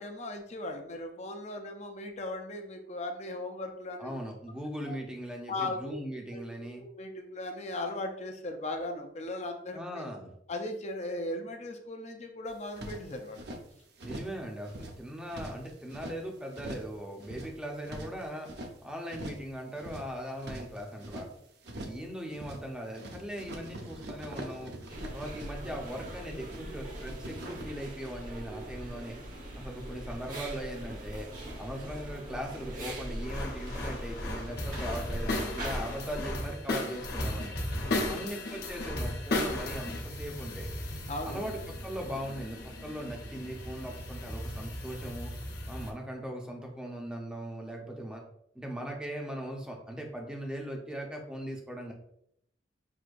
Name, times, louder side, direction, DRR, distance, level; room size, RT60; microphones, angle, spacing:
voice 1, 0.0-4.1 4.9-5.0 5.5-6.0 6.3-10.0 10.5-13.4 37.8-38.2 41.1-41.5, left 2 dB, 40° left, 4 dB, 0.6 m, -38 dB
voice 2, 4.0-6.8 9.7-10.3 14.0-21.3 21.8-24.7 25.1-29.1 29.6-31.3 31.6-37.5 37.9-40.7 41.2-45.3 45.7-48.2 48.5-51.9, equal, 5° right, 1 dB, 0.7 m, -39 dB
sound 1, 12.5-13.6 14.0-14.4 14.6-16.2 16.5-16.9 17.2-18.7 19.1-19.5 19.7-21.3 21.6-22.1 22.3-22.7 22.9-26.6 26.9-27.6, right 1 dB, 65° right, 0.7 m, -43 dB
sound 2, 24.9-36.2, right 1 dB, 45° right, 1.0 m, -41 dB
sound 3, 33.2-45.9, left 1 dB, 60° left, 1.0 m, -36 dB
6.2 x 2.8 x 2.5 m, 0.73 s
head